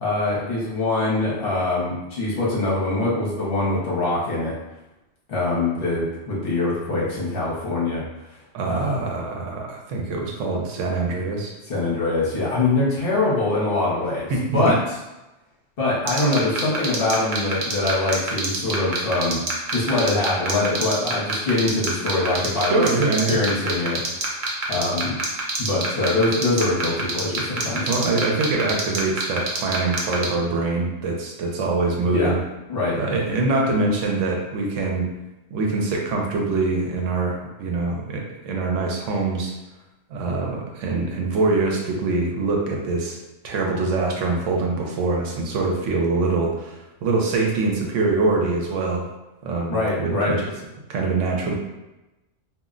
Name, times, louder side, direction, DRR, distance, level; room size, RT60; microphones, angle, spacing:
voice 1, 0.0-4.5 5.3-8.0 8.6-9.0 11.7-14.8 15.8-19.4 19.7-22.8 23.3-24.2 24.7-25.2 25.6-28.1 32.1-32.3 32.7-33.0 49.7-50.3, left 2 dB, 55° left, -6 dB, 0.9 m, -23 dB
voice 2, 8.5-11.5 14.3-14.7 22.6-23.4 27.9-32.4 32.9-35.1 35.5-39.5 40.1-43.2 43.4-49.0 49.4-50.5 50.9-51.5, right 3 dB, 80° right, 0 dB, 0.9 m, -24 dB
sound 1, 16.1-30.3, right 4 dB, 55° right, 0.6 m, -25 dB
2.4 x 2.1 x 3.7 m, 1.0 s
omnidirectional pair, 1.3 m